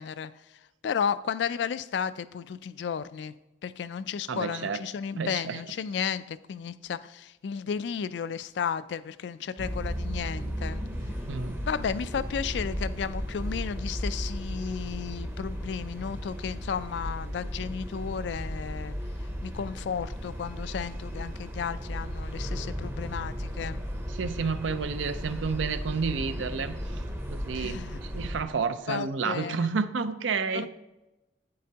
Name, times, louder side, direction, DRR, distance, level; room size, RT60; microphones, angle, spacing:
voice 1, 0.0-10.8 11.7-19.0 19.4-23.8 27.5-28.0 28.9-29.8, left 7 dB, 65° left, 0.3 m, -33 dB
voice 2, 4.3-4.8 5.2-5.6 11.3-11.6 24.1-27.1 27.3-30.7, right 5 dB, 90° right, 0.5 m, -30 dB
sound 1, 9.6-28.4, equal, 10° right, 0.6 m, -35 dB
9.2 x 7.7 x 2.8 m
head